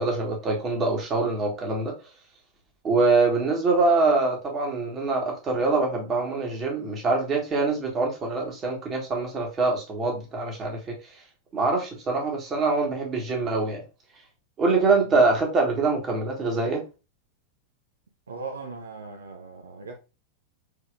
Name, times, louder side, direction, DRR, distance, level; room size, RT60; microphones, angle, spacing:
voice 1, 0.0-1.9 2.8-10.9 11.5-13.8 14.6-16.8, right 3 dB, 25° right, 1.6 m, -24 dB
voice 2, 18.3-19.9, right 4 dB, 75° right, 0.7 m, -38 dB
4.9 x 3.9 x 2.5 m
figure-of-eight pair, 90°, 0 cm